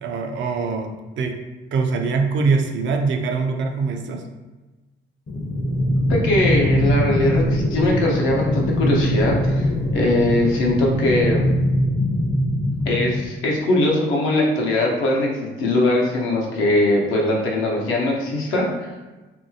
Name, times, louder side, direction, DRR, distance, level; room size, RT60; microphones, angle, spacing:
voice 1, 0.0-1.4 1.7-4.2, right 4 dB, 70° right, 4 dB, 0.4 m, -23 dB
sound 1, 5.3-13.3, equal, 40° left, 0.6 m, -22 dB
voice 2, 6.1-11.6 12.9-18.9, left 1 dB, 90° left, -2 dB, 0.7 m, -21 dB
2.9 x 2.6 x 2.7 m, 1.2 s
cardioid pair, 90°, 20 cm